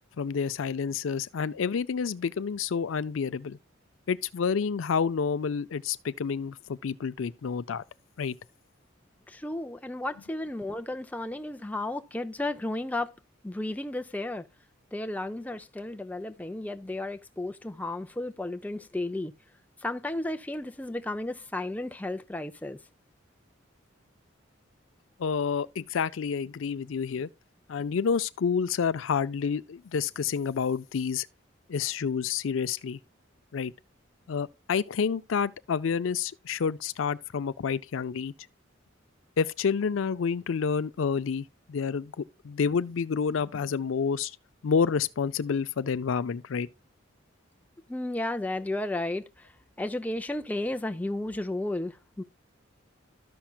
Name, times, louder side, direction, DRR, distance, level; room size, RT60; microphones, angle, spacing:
voice 1, 0.2-3.6 4.1-7.8 8.2-8.4 25.2-27.3 27.7-31.3 31.7-33.0 33.5-33.7 34.3-38.3 39.4-44.4 44.6-46.7, left 6 dB, 75° left, 0.4 m, -29 dB
voice 2, 9.3-13.1 13.4-14.4 14.9-19.3 19.8-22.8 47.9-49.2 49.8-52.2, left 1 dB, 10° left, 0.5 m, -33 dB
13.5 x 5.8 x 2.3 m
head